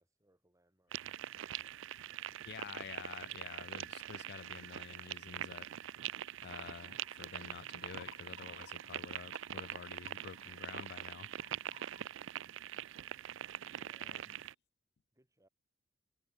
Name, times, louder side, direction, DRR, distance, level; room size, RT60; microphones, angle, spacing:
voice 1, 0.0-2.8 13.0-13.3 13.8-14.3 15.1-15.5, right 1 dB, 15° right, 6.3 m, -73 dB
sound 1, 0.9-14.5, right 11 dB, 70° right, 0.4 m, -44 dB
sound 2, 2.1-7.0, left 1 dB, 40° left, 7.6 m, -80 dB
voice 2, 2.4-5.7 6.4-11.3 14.0-14.2, left 7 dB, 55° left, 0.4 m, -49 dB
sound 3, 6.4-12.1, left 6 dB, 75° left, 0.8 m, -62 dB
head